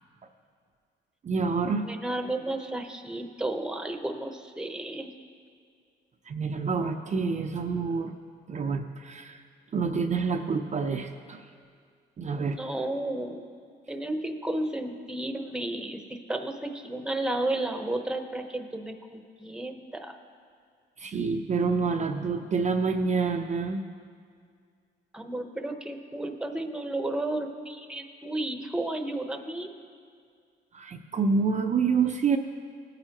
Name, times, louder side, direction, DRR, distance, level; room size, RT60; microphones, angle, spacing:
voice 1, 1.2-1.8 6.3-8.1 8.5-9.4 9.7-11.4 12.2-12.6 21.0-23.8 30.7-32.4, right 5 dB, 35° right, 3 dB, 0.6 m, -27 dB
voice 2, 1.8-5.1 12.4-13.4 13.9-20.2 25.1-29.7, right 1 dB, 5° right, 5 dB, 0.9 m, -33 dB
18.0 x 9.0 x 2.9 m, 2.1 s
cardioid pair, 90°, 20 cm